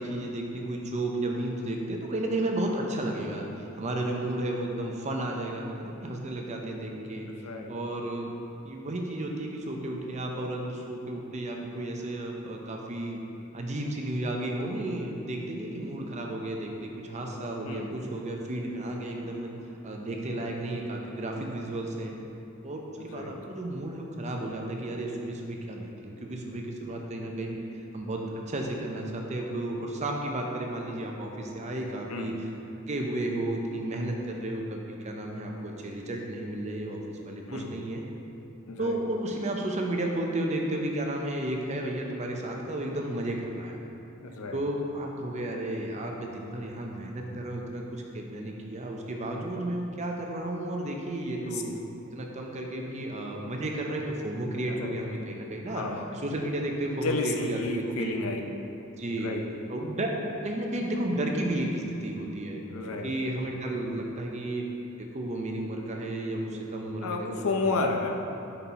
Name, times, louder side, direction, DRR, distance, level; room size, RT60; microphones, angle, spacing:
voice 1, 0.0-7.3 7.7-8.3 8.6-13.3 13.5-19.5 19.8-22.1 22.6-27.6 27.9-32.3 32.8-37.0 37.3-38.0 38.8-43.8 44.5-51.7 52.1-55.8 56.1-58.2 59.0-59.3 59.7-60.1 60.4-62.6 63.0-64.6 65.0-67.4, right 1 dB, 35° right, 1 dB, 0.6 m, -33 dB
voice 2, 7.4-7.7 17.6-17.9 20.3-20.5 23.0-23.3 32.1-32.4 37.5-37.7 38.7-39.0 44.2-44.6 51.3-51.6 54.8-55.0 55.7-56.1 57.0-58.5 59.2-59.4 62.7-63.1 67.0-68.1, left 3 dB, 85° left, 3 dB, 0.6 m, -32 dB
5.4 x 4.4 x 4.2 m, 2.8 s
head